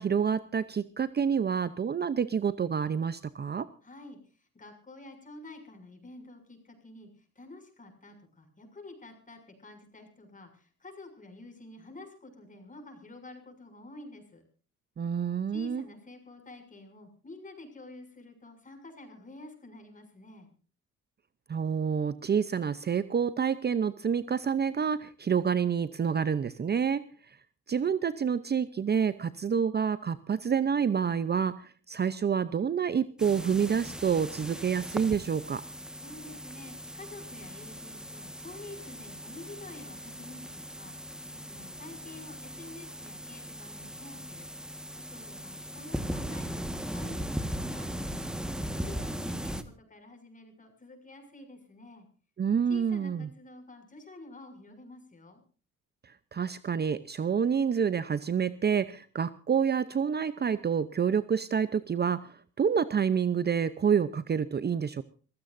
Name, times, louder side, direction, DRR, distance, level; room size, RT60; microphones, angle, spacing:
voice 1, 0.0-3.7 15.0-15.8 21.5-27.4 27.7-35.6 52.4-53.3 56.0-65.0, right 7 dB, 35° right, 15 dB, 0.7 m, -28 dB
voice 2, 3.8-14.4 15.5-20.5 36.0-52.1 52.7-55.4, left 2 dB, 25° left, 5 dB, 6.8 m, -49 dB
sound 1, 33.2-49.6, equal, ahead, 1.5 m, -38 dB
26.5 x 15.5 x 2.6 m, 0.39 s
cardioid pair, 90°, 30 cm